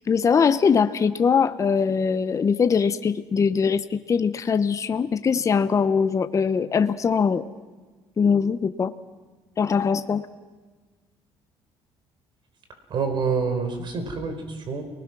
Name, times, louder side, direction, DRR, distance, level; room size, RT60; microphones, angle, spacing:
voice 1, 0.1-7.4 8.2-8.9 9.6-10.2, left 6 dB, 30° left, 11 dB, 0.9 m, -22 dB
voice 2, 12.9-14.8, right 5 dB, 50° right, 6 dB, 4.8 m, -27 dB
30.0 x 20.0 x 6.2 m, 1.4 s
cardioid pair, 110°, 10 cm